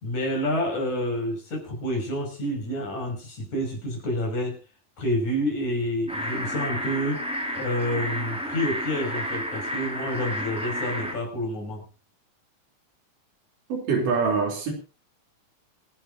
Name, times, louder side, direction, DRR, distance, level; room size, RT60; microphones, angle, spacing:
voice 1, 0.0-4.6 5.0-7.3 7.5-11.9, equal, 55° left, 7.1 m, -28 dB
sound 1, 6.1-11.1, equal, ahead, 3.0 m, -31 dB
voice 2, 13.7-14.7, right 5 dB, 65° right, 4.7 m, -24 dB
26.0 x 11.0 x 2.7 m
omnidirectional pair, 4.1 m